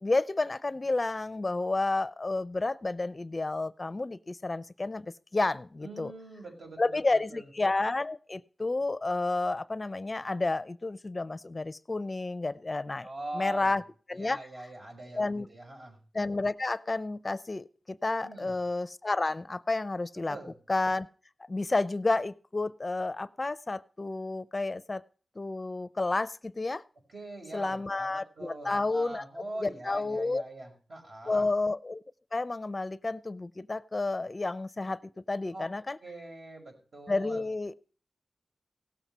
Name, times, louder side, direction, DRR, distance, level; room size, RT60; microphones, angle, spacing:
voice 1, 0.0-6.1 6.8-13.1 13.3-13.8 14.1-14.4 15.2-15.5 16.1-20.4 20.7-21.1 21.5-25.0 25.4-26.8 27.5-29.2 29.6-30.4 31.3-32.0 32.3-35.0 35.3-36.0 37.1-37.7, left 2 dB, 35° left, 17 dB, 0.5 m, -30 dB
voice 2, 5.8-7.5 13.0-13.8 14.1-16.0 18.2-18.5 20.3-20.6 27.1-31.5 35.5-35.7 36.0-37.4, right 2 dB, 70° right, 0 dB, 5.6 m, -42 dB
17.0 x 7.3 x 5.4 m, 0.40 s
wide cardioid pair, 75°, 0 cm